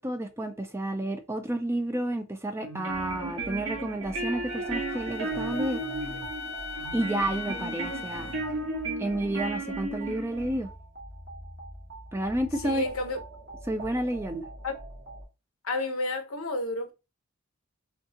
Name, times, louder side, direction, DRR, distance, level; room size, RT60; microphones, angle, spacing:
voice 1, 0.0-5.8 6.9-8.3 9.0-10.7 12.1-12.8 13.7-14.5, right 1 dB, 10° right, 0.4 m, -30 dB
sound 1, 2.6-10.6, right 2 dB, 75° right, 1.6 m, -35 dB
sound 2, 2.9-15.2, right 2 dB, 45° right, 1.3 m, -44 dB
Wind instrument woodwind instrument, 4.5-8.6, left 2 dB, 50° left, 0.6 m, -39 dB
voice 2, 12.6-13.2 14.6-14.7 15.6-16.9, left 2 dB, 75° left, 0.9 m, -30 dB
5.2 x 2.4 x 2.8 m
head